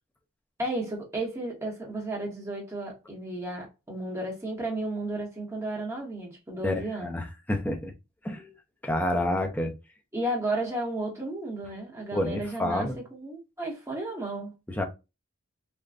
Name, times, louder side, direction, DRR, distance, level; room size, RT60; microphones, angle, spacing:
voice 1, 0.6-7.1 10.1-14.5, right 1 dB, 10° right, 0.9 m, -33 dB
voice 2, 6.6-7.9 8.2-8.5 8.8-9.7 12.1-13.0 14.7-14.8, left 1 dB, 10° left, 0.4 m, -29 dB
3.4 x 2.1 x 2.4 m
head